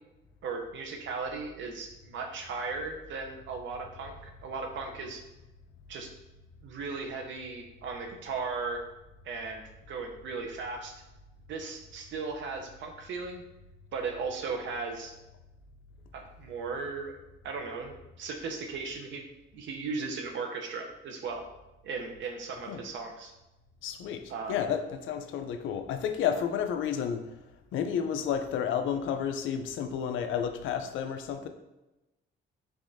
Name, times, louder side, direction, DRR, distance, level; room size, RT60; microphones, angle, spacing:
voice 1, 0.4-5.2 5.9-6.1 6.6-8.8 9.2-9.6 9.9-10.9 11.5-13.4 13.9-15.1 16.1-17.2 17.4-19.3 19.5-21.4 21.8-23.3 24.3-24.6, right 4 dB, 70° right, 3 dB, 0.6 m, -37 dB
voice 2, 23.8-24.2 24.5-27.2 27.7-31.5, left 8 dB, 75° left, 7 dB, 0.4 m, -31 dB
3.5 x 3.3 x 2.6 m, 1.0 s
cardioid pair, 90°, 20 cm